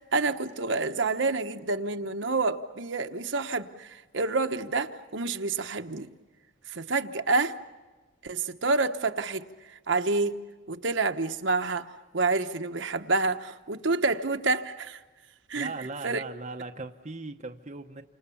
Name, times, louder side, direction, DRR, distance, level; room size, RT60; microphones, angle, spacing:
voice 1, 0.0-6.1 6.7-7.6 8.2-9.4 9.9-10.3 10.7-11.9 12.1-15.0 15.5-15.7 16.0-16.2, right 3 dB, 60° right, 1.2 m, -28 dB
voice 2, 15.5-18.0, right 3 dB, 35° right, 0.9 m, -38 dB
29.5 x 27.0 x 7.1 m
head